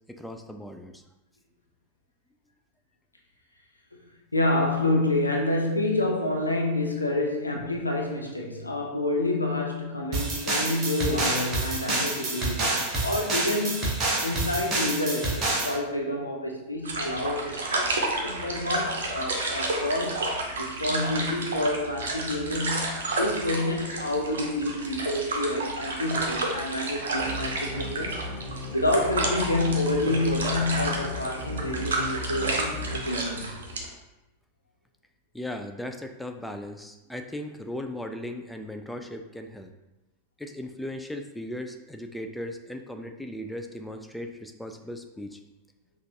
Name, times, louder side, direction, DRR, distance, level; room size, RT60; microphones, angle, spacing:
voice 1, 0.1-1.0 7.5-7.7 23.0-23.2 35.3-39.7 40.4-45.4, left 1 dB, 5° left, 5 dB, 0.3 m, -37 dB
voice 2, 4.3-17.9 18.2-20.3 20.6-28.2 28.7-33.5, left 1 dB, 80° left, 1 dB, 0.5 m, -28 dB
sound 1, 10.1-15.8, right 2 dB, 30° right, 1.0 m, -28 dB
sound 2, 16.8-33.9, right 2 dB, 65° right, 0.7 m, -31 dB
sound 3, 27.1-33.0, left 1 dB, 40° left, 1.2 m, -37 dB
5.6 x 2.4 x 2.7 m, 1.0 s
figure-of-eight pair, 90°, 0 cm